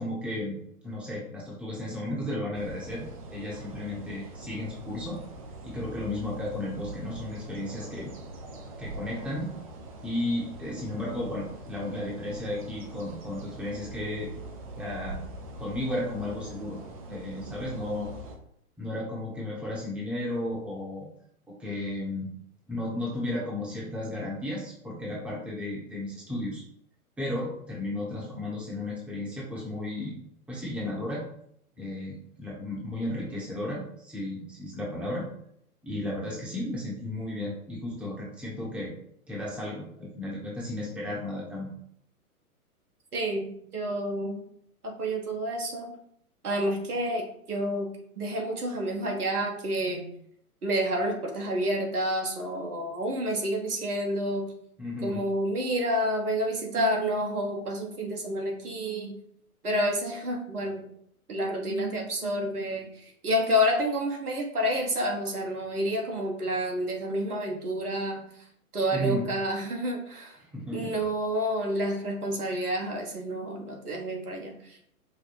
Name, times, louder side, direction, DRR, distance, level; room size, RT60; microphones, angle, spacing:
voice 1, 0.0-5.2 5.6-8.1 8.8-9.5 10.0-14.3 14.8-15.2 15.6-16.8 17.1-18.1 18.8-21.1 21.6-22.3 22.7-26.6 27.2-30.2 30.5-31.2 31.8-35.3 35.8-38.9 39.3-41.7 54.8-55.2 68.9-69.3 70.4-71.0, left 1 dB, 5° right, -5 dB, 0.9 m, -34 dB
sound 1, 2.5-18.4, right 1 dB, 25° right, 0.5 m, -43 dB
voice 2, 43.1-44.4 44.8-45.9 46.4-50.1 50.6-54.5 55.0-59.2 59.6-60.8 61.3-68.3 68.7-70.4 70.7-74.6, equal, 75° right, 1 dB, 1.4 m, -29 dB
5.2 x 2.2 x 4.5 m, 0.69 s
figure-of-eight pair, 120°, 45 cm